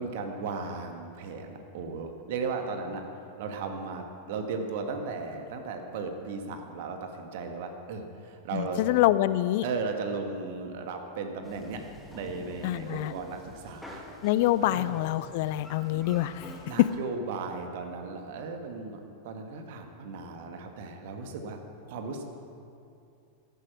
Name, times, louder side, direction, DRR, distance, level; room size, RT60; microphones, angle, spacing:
voice 1, 0.0-3.1 3.4-8.8 9.6-11.8 12.1-14.0 14.6-15.0 16.7-21.6 21.9-22.2, right 4 dB, 50° right, 4 dB, 1.8 m, -36 dB
voice 2, 8.5-9.6 12.6-13.1 14.2-16.5, left 14 dB, 50° left, 16 dB, 0.4 m, -26 dB
sound 1, 11.4-17.0, left 1 dB, ahead, 2.1 m, -47 dB
14.0 x 11.0 x 6.2 m, 2.6 s
figure-of-eight pair, 90°, 0 cm